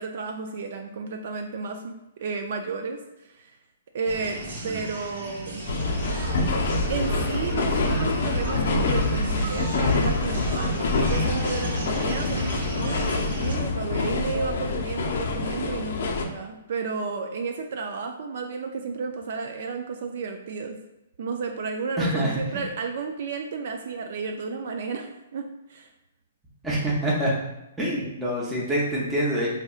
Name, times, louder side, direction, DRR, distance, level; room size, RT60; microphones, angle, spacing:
voice 1, 0.0-3.0 3.2-3.5 3.9-5.7 6.9-20.8 21.2-25.9, right 4 dB, 55° right, 4 dB, 0.3 m, -32 dB
sound 1, 4.0-13.5, right 1 dB, 80° right, 1.1 m, -36 dB
sound 2, 5.7-16.3, left 3 dB, 60° left, 0.5 m, -26 dB
sound 3, 5.9-11.4, right 2 dB, 25° right, 0.9 m, -32 dB
voice 2, 22.0-22.4 26.6-27.4 27.8-29.5, right 1 dB, 5° right, -6 dB, 0.6 m, -25 dB
4.2 x 2.7 x 2.4 m, 0.95 s
hypercardioid pair, 165°, 0 cm